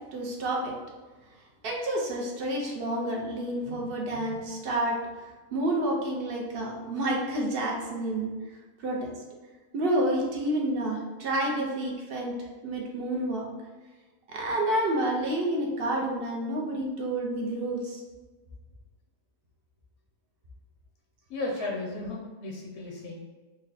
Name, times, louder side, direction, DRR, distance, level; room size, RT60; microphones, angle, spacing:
voice 1, 0.1-0.8 1.6-5.0 5.5-8.3 8.8-9.1 9.7-12.3 12.6-13.5 14.3-18.0, right 1 dB, 55° right, -1 dB, 0.7 m, -29 dB
voice 2, 21.3-23.2, left 2 dB, 60° left, -1 dB, 0.8 m, -35 dB
3.9 x 2.2 x 4.0 m, 1.3 s
omnidirectional pair, 1.5 m